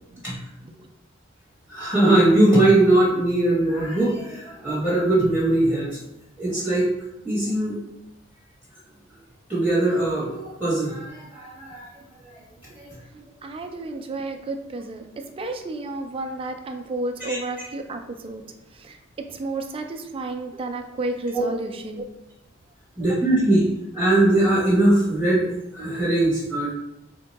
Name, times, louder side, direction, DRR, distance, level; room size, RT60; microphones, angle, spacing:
voice 1, 1.7-6.0 6.4-6.9 7.2-7.8 9.5-11.9 12.7-12.9 17.3-17.4 21.3-21.4 23.0-23.6 23.9-26.7, right 1 dB, 5° left, -9 dB, 1.0 m, -20 dB
voice 2, 13.4-15.1 15.4-18.4 18.8-19.0 19.3-22.0, right 2 dB, 30° right, 5 dB, 0.3 m, -31 dB
3.5 x 2.2 x 3.9 m, 0.89 s
head